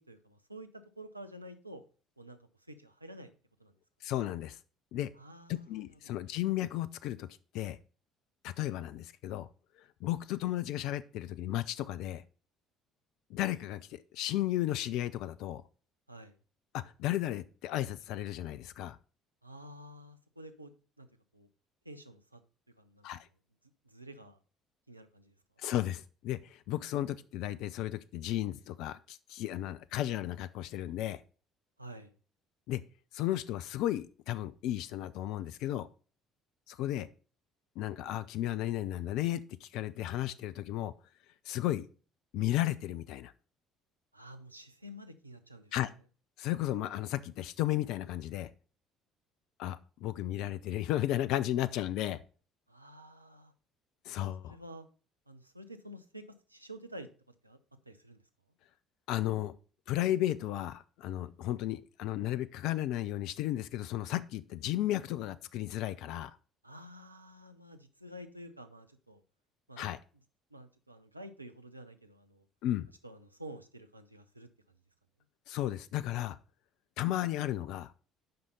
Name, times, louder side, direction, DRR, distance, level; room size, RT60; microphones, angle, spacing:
voice 1, 0.0-1.8 2.2-2.4 2.7-3.3 3.6-3.7 5.1-6.1 16.1-16.4 19.4-21.1 21.3-21.5 21.8-22.4 22.7-23.2 23.8-24.4 24.9-25.3 31.8-32.1 44.1-45.7 52.7-53.5 54.4-54.9 55.3-56.2 56.5-57.1 57.4-57.6 57.9-58.2 66.6-69.2 69.7-69.8 70.5-72.4 73.0-74.5, right 1 dB, 90° right, 8 dB, 0.6 m, -49 dB
voice 2, 4.0-4.6 4.9-5.1 5.5-7.3 7.5-7.8 8.4-9.5 9.8-12.2 13.3-15.6 16.7-19.0 23.0-23.3 25.6-31.2 32.7-32.8 33.1-35.9 36.7-37.1 37.8-40.9 41.5-41.9 42.3-43.3 45.7-45.9 46.4-48.5 49.6-52.2 54.0-54.5 59.1-59.6 59.9-66.4 69.8-70.0 72.6-72.9 75.5-76.4 77.0-77.9, left 13 dB, 60° left, 15 dB, 0.3 m, -34 dB
7.8 x 5.5 x 5.2 m, 0.39 s
figure-of-eight pair, 55°, 0 cm